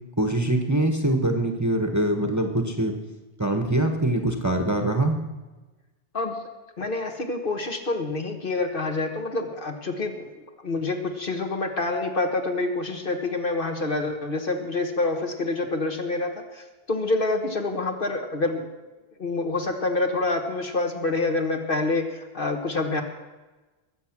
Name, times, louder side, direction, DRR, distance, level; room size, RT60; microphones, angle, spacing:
voice 1, 0.2-3.0 3.4-5.2, right 1 dB, 15° right, 3 dB, 1.1 m, -23 dB
voice 2, 6.8-10.3 10.6-18.7 19.2-23.0, left 2 dB, 50° left, 4 dB, 1.5 m, -27 dB
21.5 x 7.6 x 6.0 m, 1.2 s
omnidirectional pair, 1.1 m